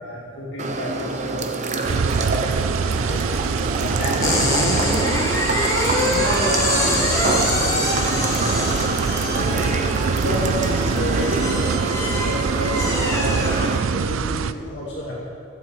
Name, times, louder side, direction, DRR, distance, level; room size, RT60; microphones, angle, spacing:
voice 1, 0.0-3.3 3.7-5.2 8.0-8.6 9.2-11.7 12.0-13.4 13.7-15.2, equal, 55° left, -5 dB, 2.1 m, -31 dB
sound 1, 0.6-13.8, right 3 dB, 35° right, 0.9 m, -26 dB
sound 2, 1.8-14.5, right 5 dB, 70° right, 0.4 m, -25 dB
sound 3, 4.2-14.2, left 2 dB, 15° left, 1.8 m, -25 dB
voice 2, 6.1-8.3, right 1 dB, 50° right, -1 dB, 2.0 m, -29 dB
15.5 x 8.1 x 7.3 m, 2.7 s
head